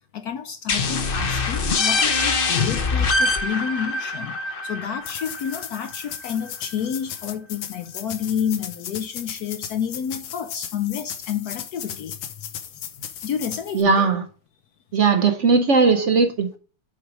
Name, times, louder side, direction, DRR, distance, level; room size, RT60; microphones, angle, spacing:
voice 1, 0.0-12.2 13.2-14.1, left 8 dB, 70° left, 1.0 m, -30 dB
sound 1, 0.7-6.1, left 3 dB, 50° left, 0.6 m, -24 dB
sound 2, 5.0-13.8, left 9 dB, 90° left, 1.6 m, -36 dB
voice 2, 13.7-14.3 14.9-16.6, right 4 dB, 65° right, 0.7 m, -18 dB
7.1 x 4.7 x 4.8 m
omnidirectional pair, 2.1 m